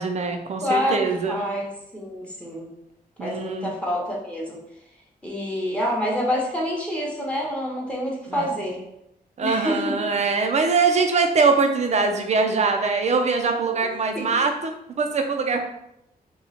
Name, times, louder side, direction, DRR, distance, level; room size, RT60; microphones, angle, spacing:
voice 1, 0.0-1.4 3.2-3.7 8.3-8.4 9.4-15.6, right 4 dB, 45° right, 5 dB, 0.5 m, -22 dB
voice 2, 0.6-2.7 3.2-4.6 5.2-8.8 9.4-10.0 14.1-14.4, equal, 5° left, -3 dB, 0.8 m, -27 dB
2.9 x 2.3 x 4.1 m, 0.80 s
cardioid pair, 95°, 16 cm